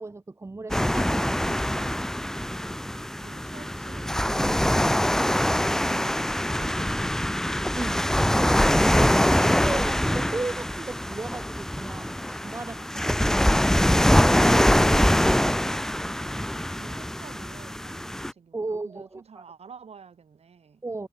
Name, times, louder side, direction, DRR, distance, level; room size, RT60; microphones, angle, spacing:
voice 1, 0.0-2.0 7.7-14.0 14.5-15.8 18.5-19.4 20.8-21.1, right 3 dB, 25° right, 1.1 m, -36 dB
sound 1, 0.7-18.3, left 1 dB, 5° left, 0.7 m, -23 dB
voice 2, 3.2-7.3 12.6-13.1 16.2-20.8, right 6 dB, 65° right, 5.1 m, -49 dB
wide cardioid pair, 110°, 11 cm